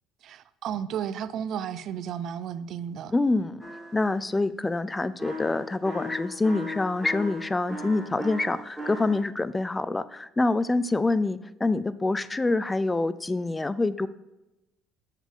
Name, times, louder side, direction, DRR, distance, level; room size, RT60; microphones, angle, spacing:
voice 1, 0.2-3.2, right 8 dB, 55° right, 15 dB, 0.4 m, -33 dB
voice 2, 3.1-3.6 3.9-14.1, left 2 dB, 15° left, 15 dB, 0.3 m, -26 dB
sound 1, 3.6-4.1 5.2-9.2, left 1 dB, 5° right, 1.9 m, -37 dB
7.2 x 7.1 x 3.7 m, 0.97 s
cardioid pair, 115°, 0 cm